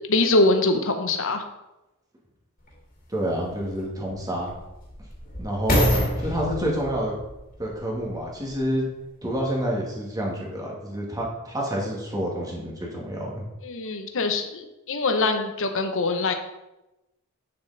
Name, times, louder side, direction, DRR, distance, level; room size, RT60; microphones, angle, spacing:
voice 1, 0.1-1.4 13.6-16.3, left 2 dB, 60° left, 6 dB, 1.0 m, -23 dB
sound 1, 2.7-2.8 3.5-8.8 9.4-9.5, equal, 40° left, 2.3 m, -28 dB
voice 2, 3.1-4.5 5.4-5.9 6.2-7.1 7.6-8.9 9.2-13.4, equal, 15° right, -2 dB, 2.0 m, -28 dB
8.9 x 6.7 x 4.1 m, 0.96 s
head